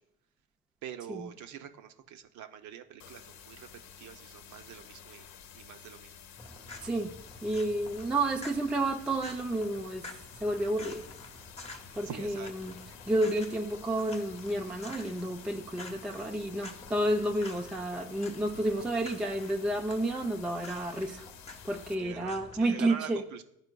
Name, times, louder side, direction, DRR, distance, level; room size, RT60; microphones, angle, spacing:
voice 1, 0.8-3.7 4.0-5.3 5.5-6.1 12.0-12.5 22.0-23.4, right 9 dB, 45° right, 9 dB, 0.6 m, -44 dB
sound 1, 3.0-21.9, left 8 dB, 55° left, 0.9 m, -51 dB
sound 2, 6.4-22.6, left 2 dB, 15° left, 0.8 m, -49 dB
voice 2, 6.8-7.1 7.4-10.1 10.4-11.0 11.9-12.8 13.1-21.3 21.6-23.2, right 1 dB, ahead, 4 dB, 0.3 m, -31 dB
10.5 x 4.4 x 2.2 m, 0.78 s
hypercardioid pair, 80°, 41 cm